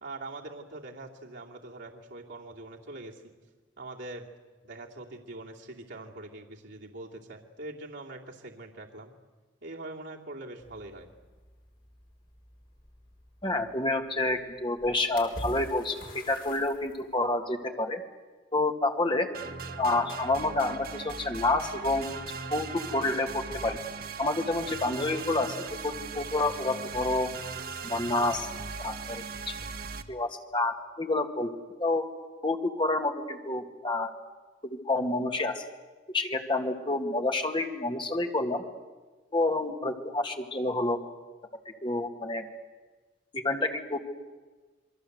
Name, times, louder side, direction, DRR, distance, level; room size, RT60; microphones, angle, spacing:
voice 1, 0.0-3.3 3.8-4.3 4.6-9.1 9.6-11.1, right 2 dB, 75° right, -2 dB, 2.7 m, -43 dB
sound 1, 10.6-17.3, left 1 dB, 50° left, 4.4 m, -47 dB
voice 2, 13.4-18.0 18.5-19.3 19.8-22.1 22.5-23.8 24.2-27.3 27.8-28.5 28.8-29.5 30.1-31.5 31.8-32.1 32.4-34.1 34.6-35.6 36.1-38.6 39.3-41.0 41.8-42.5 43.3-44.0, left 2 dB, 25° left, 4 dB, 2.1 m, -29 dB
sound 2, 19.3-30.0, right 5 dB, 50° right, 1.3 m, -39 dB
28.0 x 22.5 x 8.0 m, 1.3 s
head